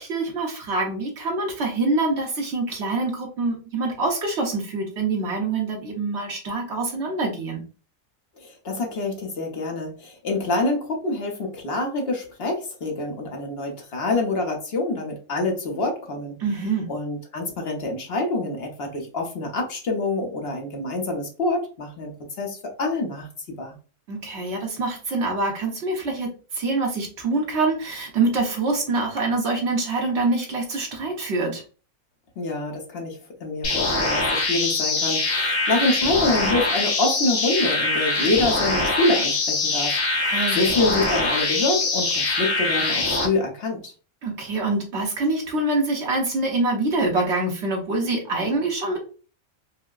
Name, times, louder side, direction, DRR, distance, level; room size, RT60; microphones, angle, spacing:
voice 1, 0.0-7.6 16.4-16.9 24.1-31.6 40.2-40.6 44.2-49.0, right 3 dB, 55° right, 0 dB, 1.3 m, -25 dB
voice 2, 8.4-16.4 16.9-22.1 22.4-23.3 23.6-23.8 32.4-43.9, left 2 dB, 50° left, 1 dB, 1.0 m, -26 dB
sound 1, 33.6-43.3, left 3 dB, 65° left, 1.8 m, -23 dB
4.6 x 2.1 x 2.4 m, 0.36 s
omnidirectional pair, 1.5 m